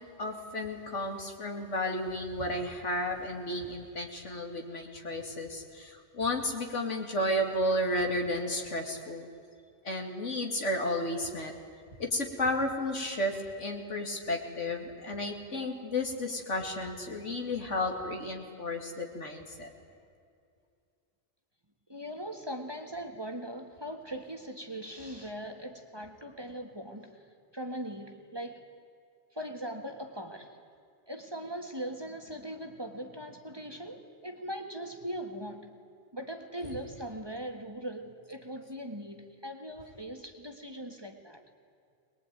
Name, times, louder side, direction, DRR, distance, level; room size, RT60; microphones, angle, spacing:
voice 1, 0.0-9.3 9.8-11.6 12.0-19.7, left 1 dB, 70° left, 3 dB, 2.9 m, -33 dB
voice 2, 21.9-28.6 29.3-30.6 31.1-35.7 36.1-41.4, equal, 20° right, 4 dB, 1.7 m, -40 dB
22.5 x 21.0 x 9.3 m, 2.4 s
omnidirectional pair, 1.3 m